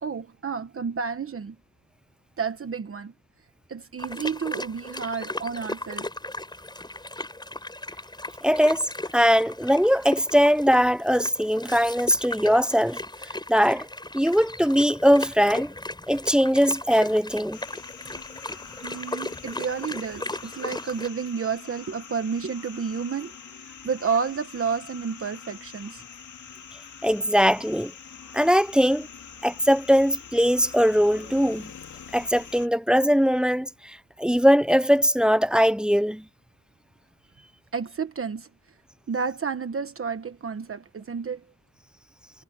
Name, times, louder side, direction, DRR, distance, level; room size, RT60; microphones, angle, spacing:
voice 1, 0.0-1.6 2.4-3.1 3.7-6.1 18.8-26.0 37.7-38.5 39.1-41.4, right 6 dB, 45° right, 1.2 m, -31 dB
sound 1, 4.0-21.1, left 2 dB, 15° left, 7.4 m, -36 dB
voice 2, 8.4-13.9 14.1-15.7 16.1-17.6 27.0-27.9 28.3-29.1 29.4-31.7 32.1-36.2, equal, 5° right, 0.4 m, -21 dB
sound 2, 17.5-32.7, left 7 dB, 65° left, 2.6 m, -44 dB
wide cardioid pair, 155°, 32 cm